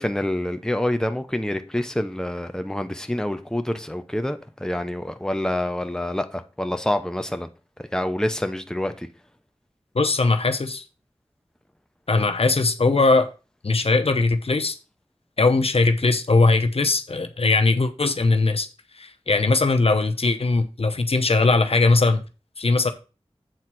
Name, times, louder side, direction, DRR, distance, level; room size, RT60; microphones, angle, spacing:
voice 1, 0.0-7.5 7.9-9.1, left 1 dB, 5° left, 0.9 m, -27 dB
voice 2, 9.9-10.8 12.1-13.3 13.6-14.8 15.4-18.7 19.0-22.2 22.6-22.9, left 3 dB, 70° left, 0.9 m, -20 dB
7.8 x 4.1 x 6.1 m
wide cardioid pair, 40°, 11 cm